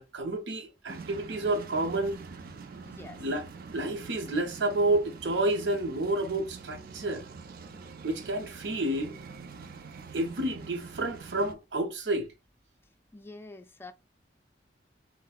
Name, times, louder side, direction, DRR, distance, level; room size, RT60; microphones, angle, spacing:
voice 1, 0.0-2.2 3.2-3.5 3.7-7.2 8.0-9.2 10.1-12.3, right 2 dB, 75° right, 0.8 m, -30 dB
sound 1, 0.9-11.5, right 5 dB, 55° right, 0.4 m, -45 dB
voice 2, 2.8-3.2 13.1-13.9, left 3 dB, 15° left, 0.4 m, -46 dB
4.3 x 2.0 x 2.3 m
head